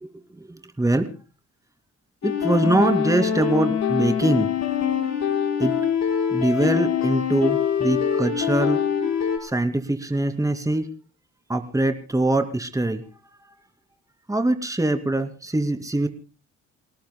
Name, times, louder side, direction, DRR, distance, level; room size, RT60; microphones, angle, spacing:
voice 1, 0.5-1.1 2.2-4.5 5.6-5.7 6.3-8.8 9.4-10.8 11.5-13.0 14.3-16.1, right 2 dB, 10° right, 7 dB, 2.5 m, -23 dB
sound 1, 2.2-9.4, left 8 dB, 60° left, 5.3 m, -24 dB
28.0 x 18.5 x 2.2 m, 0.36 s
cardioid pair, 90°, 30 cm